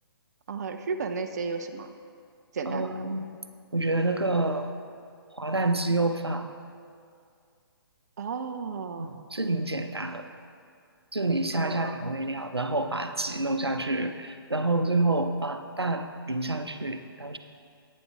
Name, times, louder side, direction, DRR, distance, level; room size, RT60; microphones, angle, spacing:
voice 1, 0.5-1.9 2.5-2.9 8.2-9.1 11.5-11.9, right 5 dB, 45° right, 6 dB, 0.4 m, -33 dB
voice 2, 2.7-3.3 3.7-4.7 5.3-6.5 9.0-10.3 11.1-17.4, right 2 dB, 85° right, 7 dB, 0.6 m, -28 dB
10.5 x 9.3 x 3.3 m, 2.3 s
figure-of-eight pair, 135°, 13 cm